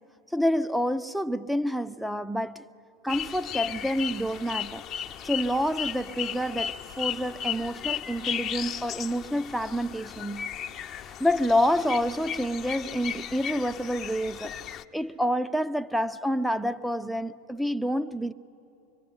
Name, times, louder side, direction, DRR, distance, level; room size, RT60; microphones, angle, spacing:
voice 1, 0.3-2.6 3.0-4.8 5.2-10.5 11.0-14.6 14.9-18.3, equal, ahead, 0.6 m, -28 dB
sound 1, 3.1-14.8, left 9 dB, 40° left, 0.8 m, -35 dB
24.0 x 23.5 x 9.7 m
hypercardioid pair, 90°, 0 cm